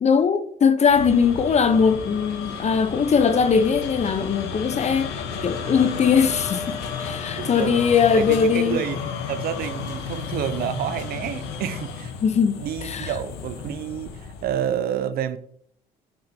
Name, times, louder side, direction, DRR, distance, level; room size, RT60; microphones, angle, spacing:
voice 1, 0.0-5.1 5.4-8.8 12.2-13.1, left 6 dB, 40° left, 0.7 m, -20 dB
sound 1, 0.9-14.7, left 6 dB, 80° left, 1.0 m, -33 dB
voice 2, 7.4-7.9 8.1-9.0 9.3-12.1 12.6-15.4, right 10 dB, 60° right, 0.6 m, -29 dB
8.8 x 5.7 x 2.8 m
supercardioid pair, 65°, 18 cm